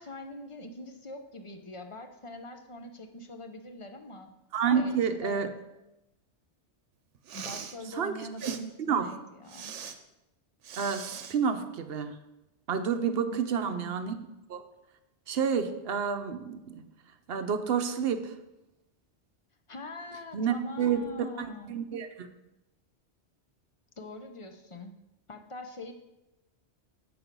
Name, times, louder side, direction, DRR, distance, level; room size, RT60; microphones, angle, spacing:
voice 1, 0.0-4.4 4.7-5.4 7.3-9.7 13.3-14.1 19.7-21.9 24.0-24.9 25.3-25.9, left 1 dB, 35° left, 6 dB, 0.6 m, -43 dB
voice 2, 4.5-5.5 7.9-9.1 10.8-12.2 12.7-14.1 14.5-14.6 15.3-16.8 17.3-18.3 20.3-22.3, right 6 dB, 60° right, 8 dB, 0.8 m, -29 dB
Respiratory sounds, 7.2-7.8 8.4-8.6 9.5-10.0 10.6-11.4, right 7 dB, 85° right, 1.0 m, -41 dB
7.7 x 6.0 x 5.1 m, 0.96 s
omnidirectional pair, 1.2 m